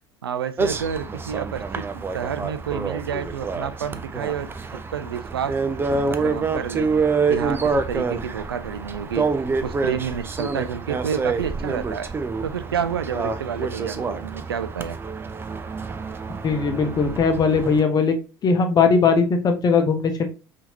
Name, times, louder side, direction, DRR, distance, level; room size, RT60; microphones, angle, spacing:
voice 1, 0.2-4.5 4.9-5.6 5.9-6.9 7.3-9.3 9.6-12.1 12.4-15.0, right 7 dB, 75° right, 0.4 m, -29 dB
sound 1, 0.6-17.8, right 4 dB, 20° right, 0.5 m, -27 dB
voice 2, 16.4-18.2 18.4-20.3, left 5 dB, 30° left, 0.9 m, -19 dB
5.5 x 2.8 x 2.8 m
figure-of-eight pair, 65°, 12 cm